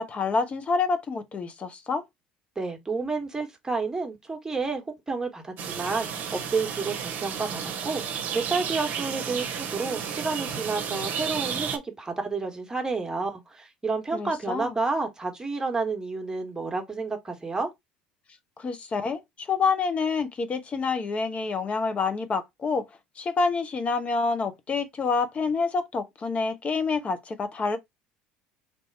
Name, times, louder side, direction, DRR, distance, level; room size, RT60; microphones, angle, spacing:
voice 1, 0.0-2.0 14.1-14.8 18.6-22.8 23.2-27.8, left 4 dB, 30° left, 0.9 m, -27 dB
voice 2, 2.6-8.0 8.3-17.7, right 4 dB, 15° right, 1.4 m, -30 dB
sound 1, 5.6-11.8, right 7 dB, 45° right, 0.9 m, -32 dB
3.4 x 2.8 x 4.1 m
hypercardioid pair, 70°, 4 cm